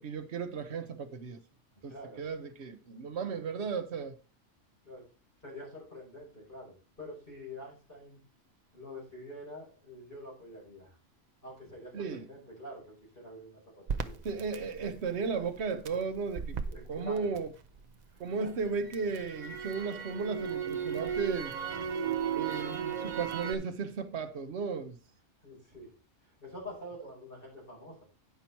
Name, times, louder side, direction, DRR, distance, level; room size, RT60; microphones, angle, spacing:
voice 1, 0.0-1.4 1.8-4.1 11.9-12.2 14.2-16.6 16.9-17.5 18.2-21.5 22.3-25.0, right 5 dB, 65° right, 1.2 m, -35 dB
voice 2, 1.9-2.2 4.8-5.0 5.4-8.2 8.7-11.0 11.4-14.2 16.7-17.3 18.1-18.5 21.7-21.8 25.4-25.9 26.2-28.0, left 1 dB, 45° left, 5.3 m, -47 dB
Crackle, 13.9-18.0 18.4-23.5, right 7 dB, 45° right, 0.6 m, -36 dB
9.5 x 5.7 x 4.5 m
omnidirectional pair, 1.3 m